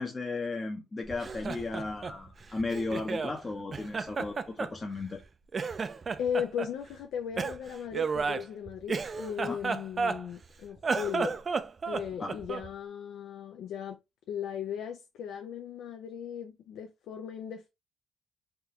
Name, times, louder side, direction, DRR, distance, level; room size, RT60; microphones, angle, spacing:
voice 1, 0.0-5.2 9.4-9.6 12.2-12.3, left 3 dB, 30° left, 0.6 m, -35 dB
Laughter, 1.1-3.4 3.7-5.2 5.5-6.7 7.4-10.5 10.8-12.7, right 5 dB, 40° right, 0.3 m, -33 dB
voice 2, 6.2-11.4 11.9-14.0 14.3-17.7, left 8 dB, 80° left, 0.4 m, -37 dB
3.4 x 2.3 x 2.8 m
cardioid pair, 90°, 0 cm